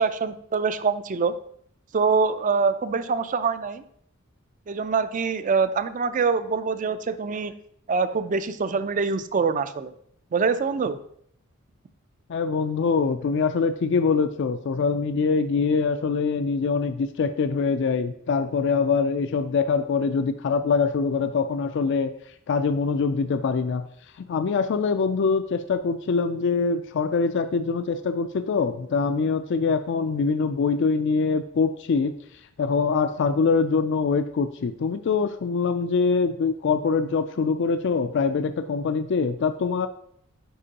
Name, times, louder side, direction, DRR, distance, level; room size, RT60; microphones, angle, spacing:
voice 1, 0.0-1.3 1.9-3.8 4.7-7.5 7.9-9.9 10.3-11.0, right 5 dB, 40° right, 13 dB, 0.4 m, -24 dB
voice 2, 12.3-22.1 22.5-23.8 24.2-32.1 32.6-39.9, left 5 dB, 55° left, 10 dB, 0.4 m, -24 dB
10.0 x 4.5 x 2.8 m, 0.68 s
head